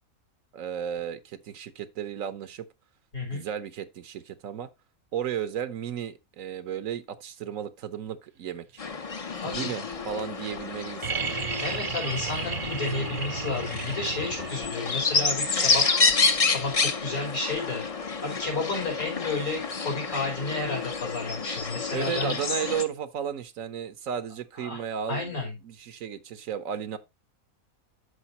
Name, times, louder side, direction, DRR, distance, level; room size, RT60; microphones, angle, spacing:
voice 1, 0.5-2.7 3.3-4.7 5.1-8.8 9.4-11.4 21.9-27.0, right 8 dB, 70° right, 1.2 m, -34 dB
voice 2, 3.1-3.4 9.4-9.7 11.6-15.8 16.5-17.8 18.2-22.4 24.6-24.8 25.1-25.5, left 3 dB, 80° left, 5.2 m, -31 dB
sound 1, 8.8-22.8, left 4 dB, 35° left, 0.6 m, -29 dB
sound 2, 11.0-14.8 16.5-16.6, right 5 dB, 45° right, 0.8 m, -33 dB
13.0 x 4.9 x 2.8 m
omnidirectional pair, 1.5 m